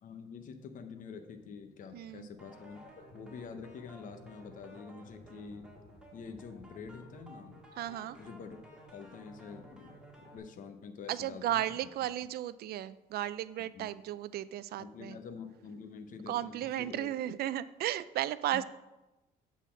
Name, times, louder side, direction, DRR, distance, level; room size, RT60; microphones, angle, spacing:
voice 1, 0.0-2.8 3.1-5.6 6.1-7.6 8.2-8.6 8.9-11.9 13.6-13.9 14.8-17.4 18.5-18.6, left 5 dB, 50° left, 7 dB, 0.8 m, -47 dB
voice 2, 1.9-2.3 7.8-8.2 11.1-15.2 16.3-18.6, right 13 dB, 65° right, 16 dB, 0.4 m, -35 dB
sound 1, 2.4-10.4, right 1 dB, 5° right, 1.8 m, -54 dB
8.2 x 4.1 x 7.1 m, 1.1 s
cardioid pair, 115°, 18 cm